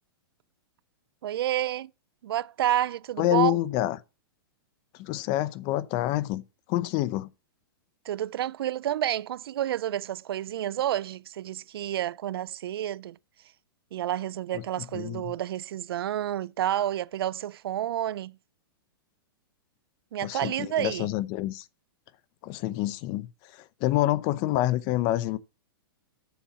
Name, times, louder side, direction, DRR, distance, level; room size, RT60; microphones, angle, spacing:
voice 1, 1.2-1.9 2.2-3.5 8.1-13.2 13.9-18.4 20.1-21.1, right 12 dB, 75° right, 0.4 m, -29 dB
voice 2, 3.2-4.0 5.0-6.4 6.7-7.3 14.9-15.3 20.2-21.6 22.4-23.3 23.5-25.4, left 15 dB, 35° left, 0.7 m, -27 dB
7.2 x 7.1 x 5.6 m
hypercardioid pair, 145°, 12 cm